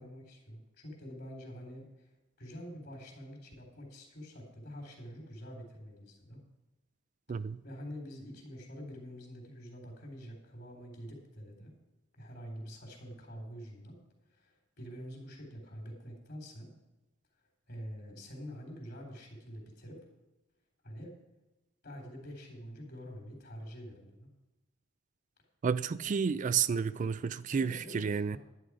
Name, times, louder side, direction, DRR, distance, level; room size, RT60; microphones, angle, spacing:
voice 1, 0.0-2.1 2.4-6.4 7.6-11.7 12.2-14.0 14.3-16.7 17.7-20.0 20.8-21.2 21.8-24.3 26.0-26.2 27.5-28.4, equal, 55° left, 3.6 m, -46 dB
voice 2, 7.3-7.6 25.6-28.4, right 6 dB, 40° right, 0.3 m, -31 dB
11.0 x 10.5 x 4.9 m
head